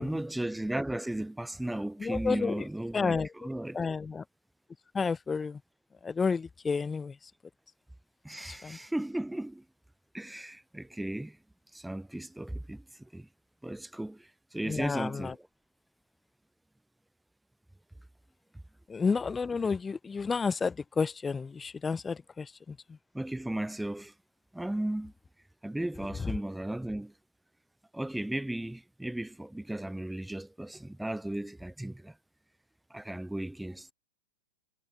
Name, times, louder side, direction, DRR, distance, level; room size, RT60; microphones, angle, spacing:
voice 1, 0.0-3.9 8.2-9.6 10.1-11.4 11.7-13.3 13.6-15.5 23.1-24.2 24.5-25.1 25.6-27.2 27.9-32.2 32.9-33.9, right 1 dB, 5° right, 1.4 m, -36 dB
voice 2, 2.0-2.6 2.9-3.3 3.7-4.2 4.9-5.6 6.0-7.1 8.5-8.8 14.7-15.3 18.9-22.8 26.2-26.3, left 5 dB, 15° left, 1.8 m, -31 dB
hypercardioid pair, 105°, 0 cm